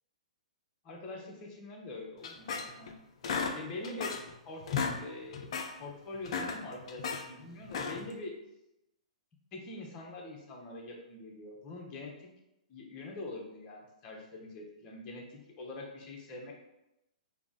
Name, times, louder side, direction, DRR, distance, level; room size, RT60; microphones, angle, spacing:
voice 1, 0.8-3.0 3.5-4.1 4.5-4.6 5.0-5.5 5.8-8.3 9.5-12.3 12.7-16.5, left 2 dB, 25° left, -1 dB, 0.7 m, -44 dB
sound 1, 2.2-2.9 3.2-4.3 4.6-5.0 5.3-5.7 6.1-7.2 7.6-8.1, left 5 dB, 45° left, 0.4 m, -35 dB
3.4 x 2.1 x 3.9 m, 0.90 s
figure-of-eight pair, 115°, 4 cm